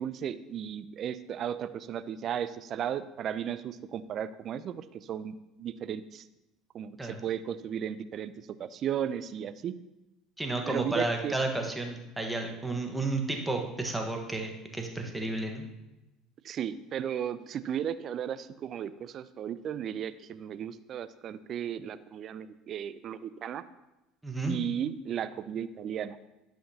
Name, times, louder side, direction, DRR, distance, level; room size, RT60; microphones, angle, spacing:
voice 1, 0.0-6.2 6.7-9.7 10.7-11.4 16.4-23.6 24.5-26.2, right 9 dB, 50° right, 14 dB, 0.4 m, -35 dB
voice 2, 10.4-15.7 24.2-24.6, right 2 dB, 10° right, 2 dB, 1.3 m, -32 dB
11.5 x 5.8 x 2.8 m, 1.0 s
hypercardioid pair, 70°, 0 cm